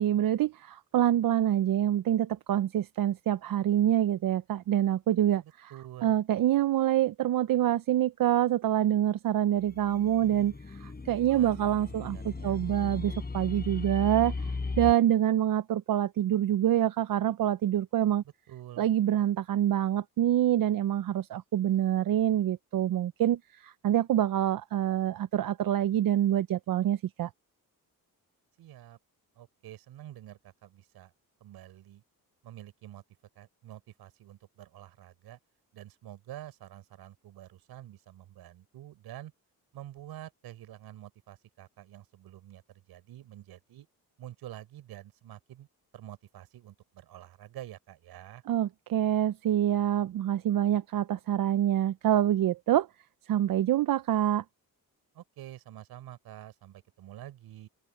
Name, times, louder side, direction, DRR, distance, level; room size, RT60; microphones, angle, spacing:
voice 1, 0.0-5.4 6.0-18.2 18.8-27.3 48.5-52.9 53.3-54.4, right 11 dB, 65° right, 0.8 m, -26 dB
voice 2, 5.4-6.2 11.2-12.6 18.5-18.9 28.6-29.0 29.4-31.1 31.4-32.0 32.4-33.0 33.4-35.4 35.7-39.3 39.7-43.9 44.2-45.7 45.9-48.4 55.1-57.7, right 13 dB, 85° right, 5.4 m, -48 dB
sound 1, 9.6-14.9, left 3 dB, 25° left, 6.7 m, -37 dB
open air
cardioid pair, 90°, 37 cm